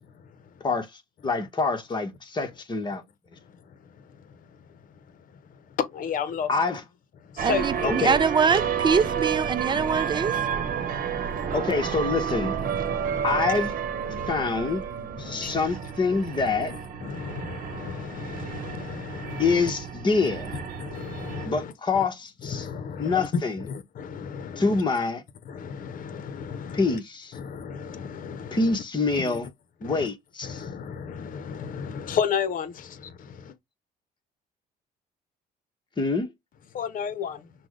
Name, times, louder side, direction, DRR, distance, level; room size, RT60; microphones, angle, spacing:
voice 1, 0.6-3.0 6.5-6.8 7.8-8.2 11.5-12.5 13.2-13.7 14.3-14.8 15.2-16.7 19.4-20.6 21.4-22.7 23.0-23.6 24.6-25.2 26.7-27.4 28.5-29.5 29.8-30.7 36.0-36.3, left 4 dB, 25° left, 1.3 m, -26 dB
voice 2, 3.5-4.4 5.6-6.5 7.2-8.0 10.5-11.5 12.9-13.2 14.1-14.3 15.2-15.6 16.1-16.2 16.7-19.7 20.8-22.0 22.4-23.3 23.7-24.8 25.5-27.0 27.3-28.8 29.1-29.2 29.8-30.1 30.4-33.5 36.7-37.5, left 7 dB, 55° left, 0.9 m, -34 dB
voice 3, 7.4-10.3, right 6 dB, 25° right, 0.5 m, -23 dB
sound 1, 7.4-21.5, right 7 dB, 55° right, 1.0 m, -31 dB
5.9 x 2.3 x 3.2 m
cardioid pair, 110°, 17 cm